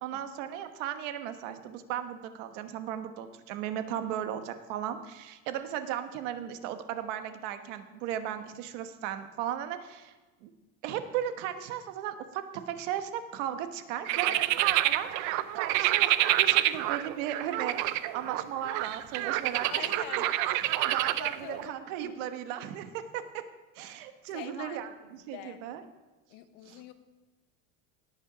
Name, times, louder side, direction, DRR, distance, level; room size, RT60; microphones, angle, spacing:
voice 1, 0.0-10.1 10.4-10.5 10.8-20.2 20.6-23.4 23.7-25.8 26.7-26.8, right 10 dB, 85° right, 9 dB, 1.2 m, -36 dB
sound 1, 14.0-21.7, right 15 dB, 55° right, 0.5 m, -27 dB
voice 2, 19.7-20.3 21.2-21.7 22.0-22.2 23.9-24.0 24.3-24.8 25.3-25.6 26.3-26.9, left 12 dB, 65° left, 10 dB, 1.1 m, -44 dB
18.0 x 6.8 x 4.9 m, 1.2 s
cardioid pair, 165°, 36 cm